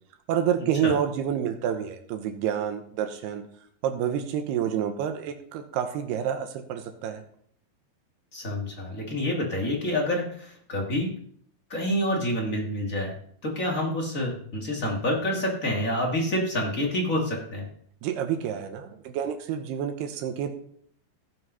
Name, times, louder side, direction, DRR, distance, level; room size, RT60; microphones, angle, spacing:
voice 1, 0.3-3.5 3.8-7.2 18.0-20.5, right 9 dB, 80° right, 6 dB, 2.9 m, -28 dB
voice 2, 8.3-11.1 11.7-13.1 13.4-17.6, left 1 dB, 40° left, 0 dB, 1.2 m, -27 dB
16.0 x 5.4 x 5.6 m, 0.63 s
omnidirectional pair, 4.8 m